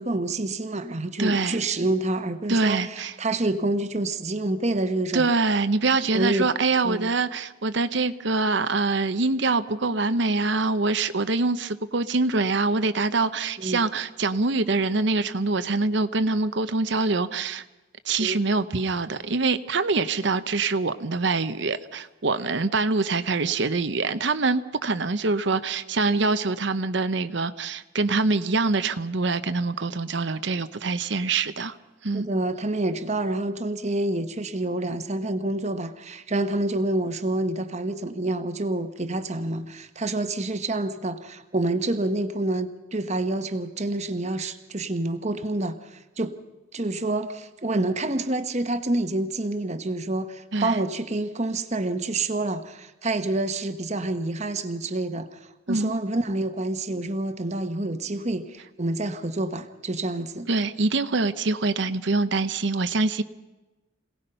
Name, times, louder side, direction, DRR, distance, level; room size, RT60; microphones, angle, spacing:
voice 1, 0.0-5.3 6.1-6.5 6.8-7.1 13.6-13.8 18.2-18.4 32.1-46.3 46.7-55.4 55.7-60.5, right 2 dB, 35° right, 9 dB, 1.2 m, -28 dB
voice 2, 1.2-1.6 2.5-3.1 5.1-17.6 18.0-31.8 32.0-32.3 50.5-50.8 55.7-55.9 60.5-63.2, right 3 dB, 60° right, 11 dB, 0.8 m, -24 dB
26.5 x 18.0 x 5.6 m, 1.1 s
head